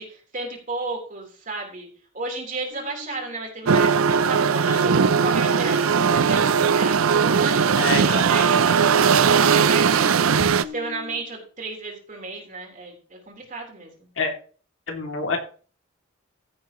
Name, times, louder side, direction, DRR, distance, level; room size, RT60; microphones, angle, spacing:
voice 1, 0.0-1.9 2.1-4.9 5.2-7.0 7.3-9.1 9.4-10.2 10.7-14.1, right 3 dB, 40° right, 0 dB, 4.0 m, -33 dB
sound 1, 2.7-5.2 5.5-9.4 9.8-11.4, left 7 dB, 60° right, 4.3 m, -41 dB
sound 2, 3.7-10.6, right 6 dB, 90° right, 0.6 m, -19 dB
voice 2, 7.8-8.3 14.2-14.3 14.9-15.4, left 4 dB, 65° left, 2 dB, 2.7 m, -26 dB
15.5 x 8.4 x 3.1 m, 0.40 s
head